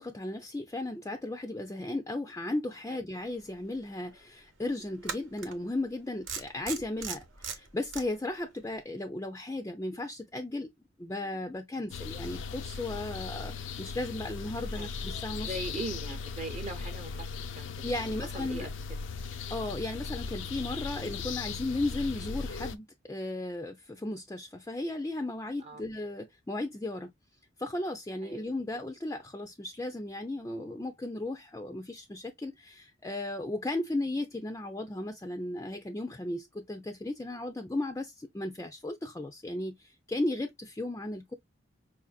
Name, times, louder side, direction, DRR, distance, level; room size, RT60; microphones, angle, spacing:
voice 1, 0.0-10.7 11.0-15.8 17.8-18.7 19.5-27.1 27.6-41.3, left 2 dB, 15° left, 0.4 m, -35 dB
sound 1, 3.6-3.7 5.0-5.5 6.3-8.0, right 6 dB, 85° right, 0.9 m, -37 dB
sound 2, 11.9-22.8, left 5 dB, 75° left, 0.5 m, -38 dB
voice 2, 15.5-17.3 17.6-18.1 18.3-18.7 25.6-25.8 28.2-28.5, right 2 dB, 35° right, 0.7 m, -40 dB
4.8 x 2.6 x 2.3 m
head